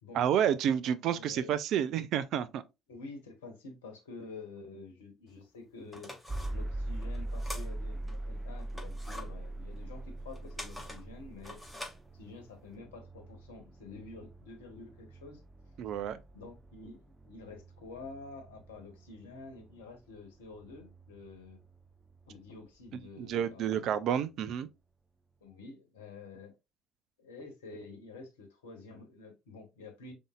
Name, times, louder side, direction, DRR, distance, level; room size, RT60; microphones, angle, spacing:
voice 1, 0.1-2.6 15.8-16.2 23.2-24.7, right 9 dB, 60° right, 0.5 m, -30 dB
voice 2, 1.1-1.5 2.9-6.1 6.5-11.6 12.1-15.4 16.3-21.6 22.3-23.9 25.4-26.6 27.2-30.1, left 3 dB, 80° left, 1.1 m, -49 dB
sound 1, 5.3-5.4 5.8-8.2 8.6-12.7, left 1 dB, 5° left, 2.0 m, -46 dB
sound 2, 6.3-22.2, right 1 dB, 20° right, 0.8 m, -42 dB
5.3 x 3.5 x 2.4 m
figure-of-eight pair, 50°, 0 cm